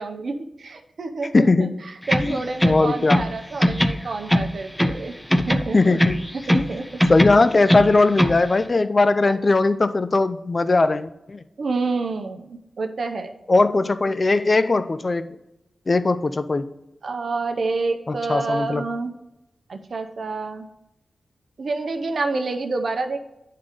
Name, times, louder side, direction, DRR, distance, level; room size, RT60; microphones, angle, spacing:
voice 1, 0.0-6.0 6.3-7.0 9.2-9.3 11.6-13.3 17.0-19.1 19.7-20.7 21.6-23.2, right 3 dB, 70° right, 6 dB, 0.7 m, -28 dB
voice 2, 1.3-1.8 2.2-3.2 5.7-6.2 6.5-6.7 7.1-11.4 13.5-15.4 15.9-16.7 18.1-18.9, left 3 dB, 45° left, 12 dB, 0.5 m, -19 dB
sound 1, 2.0-3.3 3.6-5.0 5.3-6.7 7.0-8.4, equal, 5° left, 0.7 m, -21 dB
9.7 x 3.8 x 5.0 m, 0.91 s
cardioid pair, 40°, 0 cm